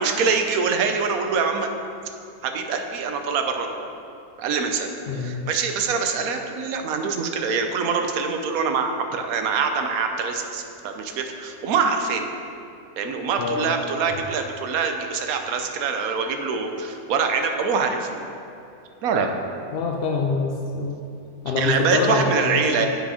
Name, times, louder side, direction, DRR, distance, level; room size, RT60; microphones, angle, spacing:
voice 1, 0.0-1.7 2.4-3.9 4.4-12.3 13.0-18.2 19.0-19.4 21.5-22.9, right 5 dB, 70° right, 5 dB, 1.1 m, -24 dB
voice 2, 5.1-5.5 13.4-13.7 19.7-21.0 21.4-22.9, left 4 dB, 65° left, 0 dB, 0.5 m, -25 dB
7.6 x 5.6 x 4.9 m, 2.6 s
omnidirectional pair, 1.6 m